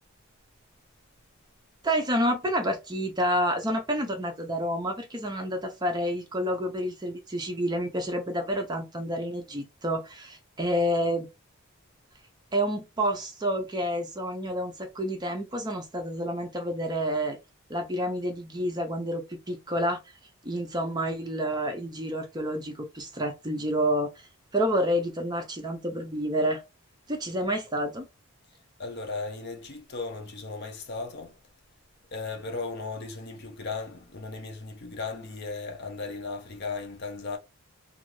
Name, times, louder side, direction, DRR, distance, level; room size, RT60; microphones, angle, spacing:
voice 1, 1.8-11.3 12.5-17.4 17.7-20.0 20.4-24.1 24.5-26.6 27.1-28.1, equal, 20° right, 0.5 m, -29 dB
voice 2, 28.8-31.4 32.1-37.4, left 3 dB, 50° left, 0.7 m, -36 dB
2.6 x 2.5 x 3.0 m
head